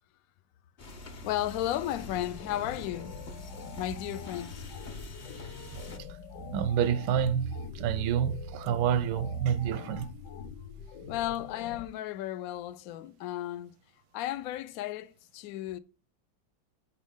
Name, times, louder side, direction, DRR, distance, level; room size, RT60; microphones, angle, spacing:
sound 1, 0.8-6.0, left 1 dB, 45° left, 0.6 m, -45 dB
voice 1, 1.2-3.2 3.8-4.6 11.1-13.7 14.1-15.8, left 13 dB, 85° left, 0.7 m, -34 dB
sound 2, 1.9-11.9, left 6 dB, 70° left, 1.2 m, -45 dB
voice 2, 6.5-10.1, right 8 dB, 85° right, 1.4 m, -28 dB
10.5 x 4.1 x 3.6 m
omnidirectional pair, 2.1 m